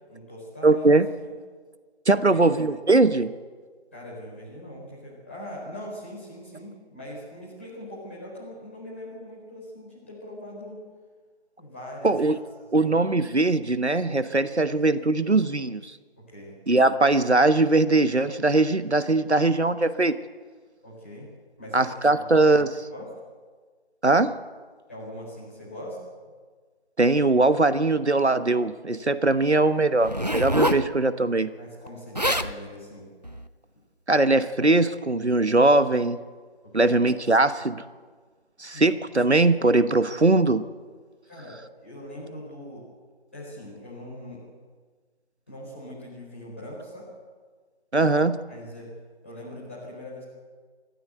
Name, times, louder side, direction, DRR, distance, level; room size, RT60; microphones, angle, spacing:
voice 1, 0.1-0.9 1.2-1.3 2.1-2.5 3.9-10.8 11.6-12.9 16.3-16.5 20.8-21.3 21.6-22.2 22.9-23.0 24.9-26.0 31.6-33.1 36.6-37.0 38.7-38.8 41.2-42.9 43.3-44.4 45.5-47.1 48.5-48.9 49.2-50.2, left 1 dB, 10° left, -8 dB, 4.6 m, -41 dB
voice 2, 0.6-1.1 2.1-3.3 12.0-12.4 12.7-16.0 16.7-20.2 21.7-22.8 24.0-24.3 27.0-31.5 34.1-36.2 36.7-37.8 38.6-40.7 47.9-48.4, right 2 dB, 85° right, 13 dB, 1.2 m, -21 dB
Zipper (clothing), 30.0-30.9 31.9-32.0 32.1-32.5 33.2-33.5, equal, 40° right, 0.7 m, -25 dB
23.5 x 14.5 x 8.1 m, 1.5 s
figure-of-eight pair, 170°, 33 cm